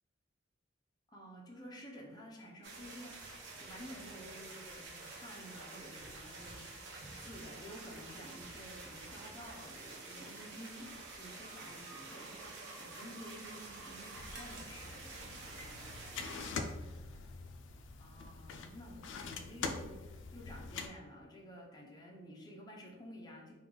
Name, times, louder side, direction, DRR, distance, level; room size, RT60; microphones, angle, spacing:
voice 1, 1.1-3.3 3.6-6.9 7.2-16.0 18.0-23.5, equal, 20° left, -1 dB, 0.6 m, -51 dB
sound 1, 2.6-16.5, right 3 dB, 65° right, 0.7 m, -49 dB
sound 2, 14.1-20.9, left 4 dB, 65° left, 0.3 m, -44 dB
3.2 x 2.3 x 3.6 m, 1.1 s
head